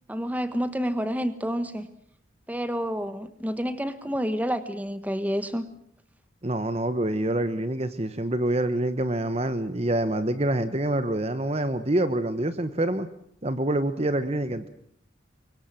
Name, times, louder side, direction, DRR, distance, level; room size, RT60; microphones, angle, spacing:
voice 1, 0.1-1.9 2.5-5.6, equal, 10° right, 12 dB, 1.4 m, -29 dB
voice 2, 6.4-13.1 13.4-14.7, right 1 dB, 30° right, 12 dB, 1.1 m, -26 dB
24.0 x 23.5 x 7.7 m, 0.68 s
head